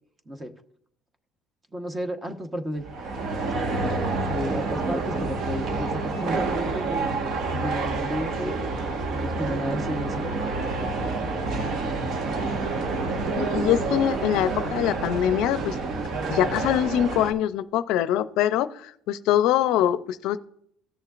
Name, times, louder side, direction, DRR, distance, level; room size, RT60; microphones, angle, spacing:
voice 1, 1.7-2.8 3.4-3.6 4.0-8.6 9.1-10.5, equal, 20° right, 7 dB, 1.1 m, -33 dB
sound 1, 2.8-17.3, right 3 dB, 60° right, 1.3 m, -28 dB
voice 2, 13.4-15.8 16.3-20.4, left 11 dB, 75° left, 14 dB, 0.5 m, -23 dB
16.0 x 6.7 x 2.5 m, 0.69 s
cardioid pair, 105°, 0 cm